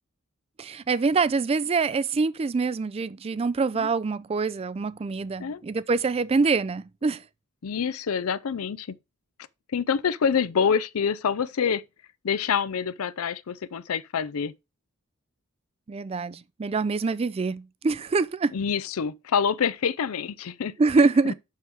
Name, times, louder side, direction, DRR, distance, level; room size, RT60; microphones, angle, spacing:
voice 1, 0.6-7.2 15.9-18.6 20.8-21.3, right 4 dB, 25° right, 0.3 m, -25 dB
voice 2, 7.6-8.9 9.7-11.8 12.2-14.5 18.5-20.7, left 6 dB, 85° left, 0.5 m, -26 dB
6.2 x 5.6 x 4.6 m
head